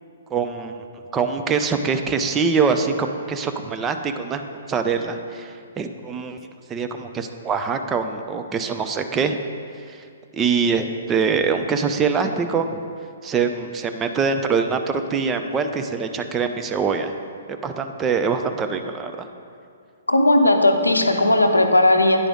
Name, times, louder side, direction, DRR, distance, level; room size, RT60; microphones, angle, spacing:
voice 1, 0.3-0.9 1.1-6.4 6.7-9.4 9.9-10.0 10.3-12.8 13.2-17.1 17.6-19.3, right 5 dB, 15° right, 6 dB, 0.4 m, -24 dB
voice 2, 20.1-22.3, left 1 dB, 85° left, 6 dB, 0.6 m, -17 dB
9.7 x 4.9 x 3.6 m, 2.3 s
figure-of-eight pair, 120°, 0 cm